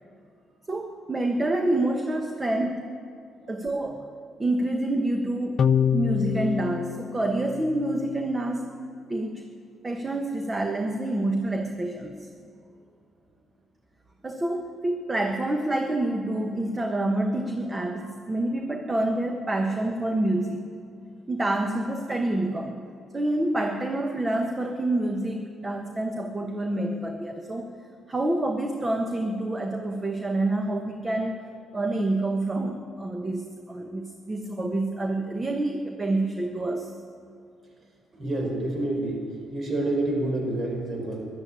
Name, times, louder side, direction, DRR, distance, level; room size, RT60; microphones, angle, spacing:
voice 1, 0.7-2.8 3.5-4.0 4.4-5.6 5.9-8.6 9.1-9.4 9.8-12.3 14.2-20.7 21.3-22.8 23.1-27.7 28.1-31.4 31.7-36.9, right 1 dB, 25° right, 4 dB, 1.1 m, -27 dB
sound 1, 5.6-8.2, left 8 dB, 50° left, 0.5 m, -26 dB
voice 2, 38.1-39.2 39.5-41.3, right 1 dB, 50° right, 0 dB, 4.8 m, -28 dB
13.5 x 11.5 x 8.6 m, 2.3 s
cardioid pair, 90°, 0 cm